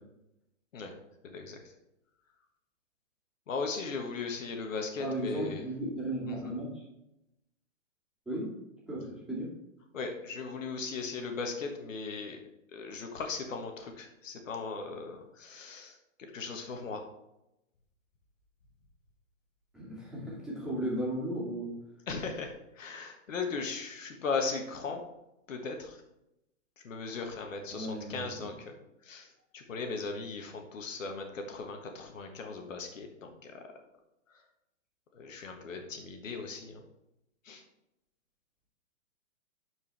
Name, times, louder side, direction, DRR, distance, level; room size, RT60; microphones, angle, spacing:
voice 1, 1.2-1.6 3.5-5.6 6.3-6.5 9.9-12.4 12.7-16.0 16.3-17.0 22.1-25.0 25.5-26.0 26.8-28.8 29.0-29.3 29.5-33.6 35.1-36.8 37.4-37.6, left 4 dB, 75° left, 4 dB, 1.6 m, -38 dB
voice 2, 5.0-6.8 8.3-8.5 8.9-9.5 19.7-21.7 27.7-28.5, right 1 dB, ahead, -7 dB, 2.5 m, -35 dB
12.0 x 4.8 x 3.4 m, 0.87 s
hypercardioid pair, 150°, 39 cm